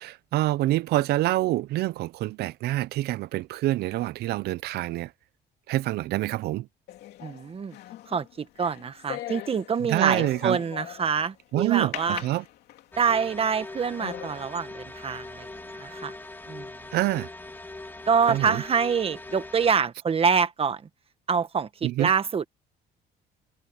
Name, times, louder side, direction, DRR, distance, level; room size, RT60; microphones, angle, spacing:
voice 1, 0.0-5.1 5.7-6.7 9.8-10.6 11.5-12.4 16.9-17.3 18.3-18.6 21.8-22.1, right 16 dB, 75° right, 0.6 m, -26 dB
sound 1, 6.9-11.3 11.9-13.0 13.5-13.6 14.0-14.4, left 13 dB, 75° left, 3.1 m, -40 dB
voice 2, 7.2-7.8 8.1-12.2 13.0-16.1 16.5-16.7 18.1-20.8 21.3-22.4, right 6 dB, 35° right, 1.6 m, -26 dB
sound 2, 12.9-19.7, left 2 dB, 10° left, 1.9 m, -41 dB
cardioid pair, 110°, 17 cm